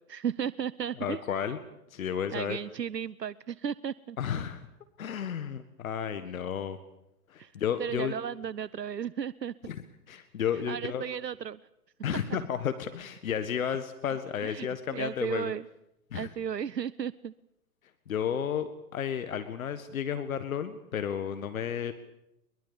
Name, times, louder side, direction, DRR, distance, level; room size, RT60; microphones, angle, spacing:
voice 1, 0.1-1.2 2.3-4.2 7.4-7.5 7.8-9.5 10.7-11.6 14.4-14.7 14.9-15.7 16.1-17.3, right 8 dB, 75° right, 20 dB, 0.8 m, -34 dB
voice 2, 1.0-1.6 1.9-2.6 4.2-4.7 5.0-6.8 7.3-8.1 9.6-9.8 10.1-11.0 12.0-15.5 16.1-16.3 18.1-21.9, left 8 dB, 55° left, 10 dB, 1.8 m, -32 dB
23.0 x 22.5 x 7.1 m, 0.85 s
figure-of-eight pair, 115°, 50 cm